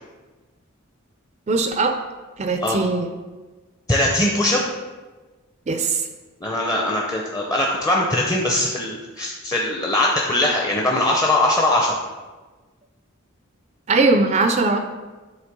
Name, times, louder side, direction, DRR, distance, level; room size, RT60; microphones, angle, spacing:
voice 1, 1.5-2.0 2.4-3.1 5.7-6.1 13.9-14.8, right 3 dB, 30° right, 6 dB, 0.4 m, -20 dB
voice 2, 3.9-4.6 6.4-12.0, left 1 dB, 15° left, -2 dB, 0.6 m, -21 dB
8.0 x 3.3 x 6.0 m, 1.3 s
head